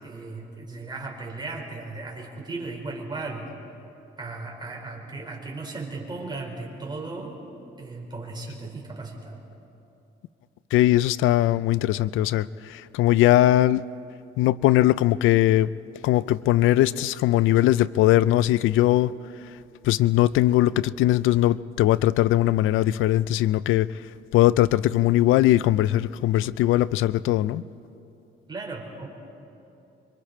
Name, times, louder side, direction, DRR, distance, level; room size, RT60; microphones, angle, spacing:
voice 1, 0.0-3.5 4.2-7.4 7.8-9.4 28.5-29.1, right 3 dB, 20° right, -1 dB, 4.9 m, -36 dB
voice 2, 10.7-13.8 14.4-15.7 16.0-19.1 19.8-24.0 24.3-27.6, left 14 dB, 85° left, 18 dB, 0.4 m, -20 dB
26.5 x 24.5 x 4.4 m, 2.8 s
cardioid pair, 90°, 20 cm